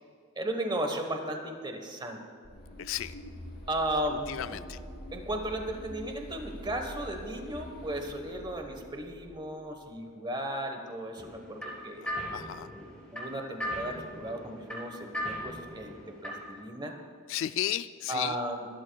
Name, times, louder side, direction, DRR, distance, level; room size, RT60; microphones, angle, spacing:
voice 1, 0.3-2.2 3.7-4.6 5.1-12.1 13.1-15.9 16.2-17.0 18.1-18.7, right 1 dB, 20° right, 4 dB, 1.1 m, -35 dB
sound 1, 2.4-9.9, equal, 50° left, 3.1 m, -46 dB
voice 2, 2.8-3.1 4.1-4.8 12.3-12.7 17.3-18.4, left 11 dB, 65° left, 14 dB, 0.3 m, -34 dB
sound 2, 11.2-16.6, equal, 5° left, 3.4 m, -39 dB
25.0 x 13.0 x 2.3 m, 2.2 s
head